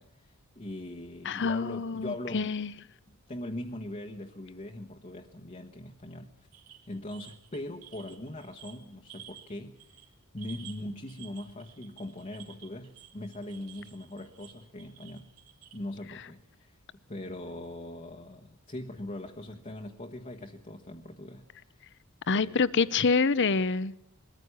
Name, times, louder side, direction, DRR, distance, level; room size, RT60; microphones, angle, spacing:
voice 1, 0.0-2.6 3.3-6.5 6.9-10.0 10.3-15.3 15.7-16.8 17.1-21.9 22.3-22.5, left 1 dB, 35° left, 1.3 m, -41 dB
voice 2, 1.2-2.7 22.3-23.9, left 4 dB, 55° left, 0.7 m, -26 dB
sound 1, 6.5-9.5 9.8-10.1 10.4-15.8, right 11 dB, 85° right, 3.2 m, -52 dB
21.5 x 14.5 x 9.7 m
head